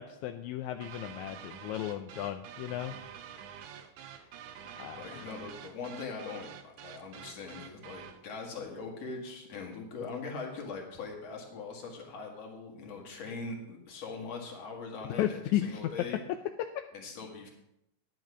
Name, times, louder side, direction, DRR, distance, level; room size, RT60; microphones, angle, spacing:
voice 1, 0.0-2.9 4.7-5.3 15.2-15.8 16.6-16.8, left 12 dB, 80° left, 6 dB, 1.8 m, -34 dB
sound 1, 0.8-8.2, right 8 dB, 75° right, 2.1 m, -47 dB
voice 2, 5.0-16.2 16.9-17.5, left 4 dB, 55° left, 1 dB, 2.9 m, -41 dB
10.5 x 9.3 x 5.0 m, 0.85 s
omnidirectional pair, 3.6 m